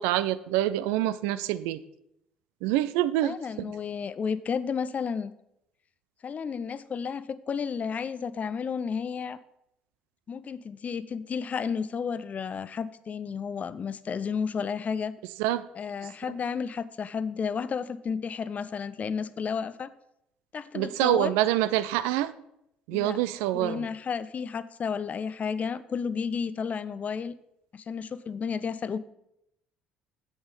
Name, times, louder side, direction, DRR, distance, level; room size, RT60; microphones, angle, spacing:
voice 1, 0.0-1.8 2.6-3.7 15.4-15.7 16.0-16.1 20.7-22.3 22.9-23.9, right 14 dB, 65° right, 15 dB, 0.4 m, -26 dB
voice 2, 3.2-5.3 6.2-9.4 10.3-15.1 15.8-19.9 20.5-21.3 22.9-23.2 23.5-27.3 27.7-29.0, left 6 dB, 35° left, 16 dB, 0.5 m, -32 dB
8.0 x 7.0 x 5.3 m, 0.80 s
figure-of-eight pair, 50°, 4 cm